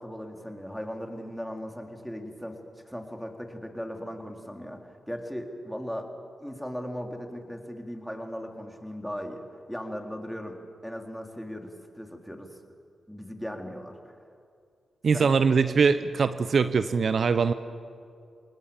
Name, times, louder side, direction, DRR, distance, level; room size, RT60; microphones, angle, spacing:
voice 1, 0.0-2.6 2.9-6.1 6.4-12.6 13.1-14.2 15.1-15.3, equal, ahead, 3 dB, 3.7 m, -38 dB
voice 2, 15.0-17.5, right 5 dB, 65° right, 12 dB, 0.8 m, -22 dB
28.0 x 19.5 x 7.2 m, 2.4 s
supercardioid pair, 45°, 0 cm